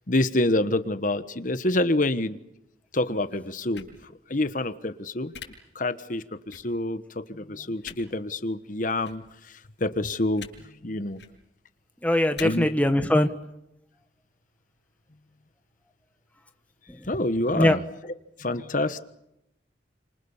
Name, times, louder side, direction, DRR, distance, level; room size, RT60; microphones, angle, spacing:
voice 1, 0.1-2.4 2.9-3.8 4.3-5.3 5.7-10.5 10.8-11.2 12.4-12.7 17.1-17.8 18.4-19.0, left 2 dB, 45° left, 11 dB, 1.3 m, -27 dB
sound 1, 3.7-3.9 5.3-5.5 6.5-6.6 7.8-8.0 9.0-9.2 10.3-10.5 11.1-11.3 12.3-12.4, left 7 dB, 70° left, 6.9 m, -40 dB
voice 2, 12.0-13.3 16.9-17.1 17.5-17.8, left 1 dB, 10° left, 7 dB, 1.4 m, -22 dB
30.0 x 27.0 x 7.2 m, 0.84 s
head